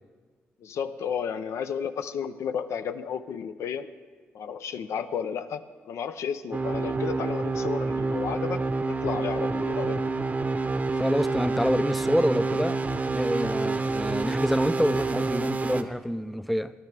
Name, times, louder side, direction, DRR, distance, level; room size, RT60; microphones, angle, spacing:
voice 1, 0.6-3.9 4.3-10.0, left 7 dB, 80° left, 10 dB, 0.5 m, -32 dB
sound 1, 6.5-15.8, right 3 dB, 30° right, 0.7 m, -28 dB
voice 2, 11.0-12.8 13.1-16.7, equal, ahead, 13 dB, 0.4 m, -27 dB
17.5 x 11.5 x 3.3 m, 1.5 s
cardioid pair, 80°, 5 cm